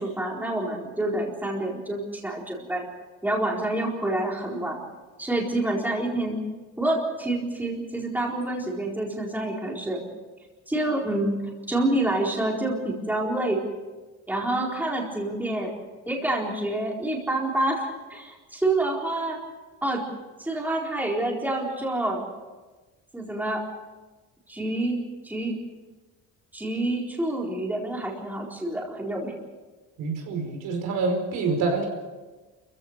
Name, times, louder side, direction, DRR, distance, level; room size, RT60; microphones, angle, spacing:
voice 1, 0.0-2.9 3.2-4.8 5.2-6.4 6.8-10.0 10.7-11.3 11.7-13.6 14.3-15.7 16.1-19.4 19.8-20.0 20.4-22.2 23.1-23.6 24.5-25.0 25.2-25.6 26.5-29.3, right 1 dB, 5° right, -2 dB, 4.2 m, -27 dB
voice 2, 30.0-31.9, right 3 dB, 75° right, 3 dB, 5.3 m, -26 dB
29.5 x 15.5 x 6.7 m, 1.2 s
cardioid pair, 145°, 32 cm